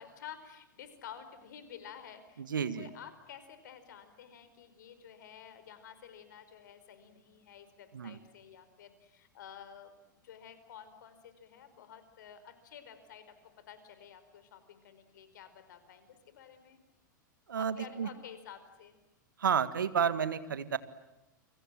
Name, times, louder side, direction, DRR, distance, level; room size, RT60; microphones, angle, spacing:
voice 1, 0.0-2.4 2.8-16.8 17.5-19.0, left 8 dB, 70° left, 11 dB, 4.8 m, -51 dB
voice 2, 2.4-2.9 7.9-8.2 17.5-18.1 19.4-20.8, right 7 dB, 80° right, 14 dB, 1.7 m, -31 dB
30.0 x 24.0 x 7.6 m, 0.92 s
hypercardioid pair, 105°, 11 cm